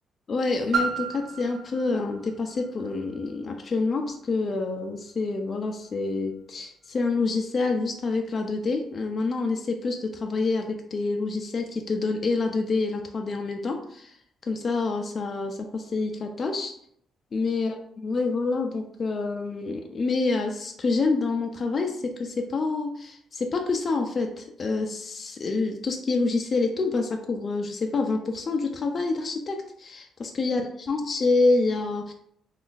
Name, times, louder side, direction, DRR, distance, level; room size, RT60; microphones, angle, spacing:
voice 1, 0.3-14.1 14.5-16.7 17.3-32.1, left 3 dB, 40° left, 3 dB, 0.4 m, -27 dB
Piano, 0.7-6.2 6.9-7.0, right 4 dB, 80° right, 1.0 m, -35 dB
3.8 x 2.4 x 2.4 m, 0.67 s
cardioid pair, 90°, 0 cm